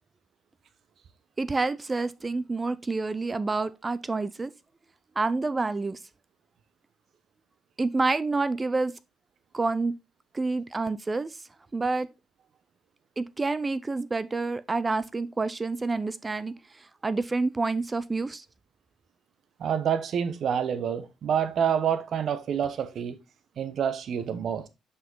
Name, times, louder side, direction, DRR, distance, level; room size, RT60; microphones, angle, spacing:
voice 1, 1.4-4.5 5.2-6.0 7.8-8.9 9.5-9.9 10.3-11.4 11.7-12.1 13.2-18.4, right 3 dB, 25° right, 0.5 m, -28 dB
voice 2, 19.6-23.2 23.6-24.7, right 8 dB, 60° right, 1.0 m, -27 dB
5.8 x 5.4 x 3.9 m
supercardioid pair, 75°, 0 cm